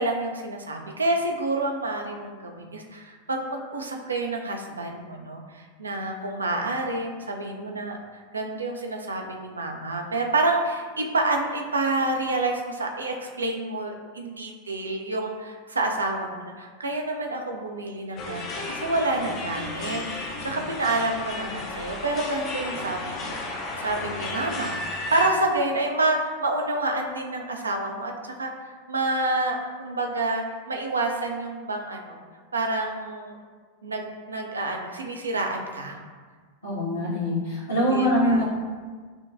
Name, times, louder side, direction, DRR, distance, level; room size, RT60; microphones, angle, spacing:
voice 1, 0.0-28.5 28.9-32.2 32.5-33.4 33.8-36.0 37.9-38.4, right 2 dB, 75° right, 2 dB, 0.4 m, -28 dB
sound 1, 18.2-25.3, left 2 dB, 35° left, 0.5 m, -33 dB
voice 2, 36.6-38.5, equal, 75° left, -8 dB, 1.3 m, -23 dB
6.1 x 2.2 x 2.5 m, 1.5 s
figure-of-eight pair, 90°, 0 cm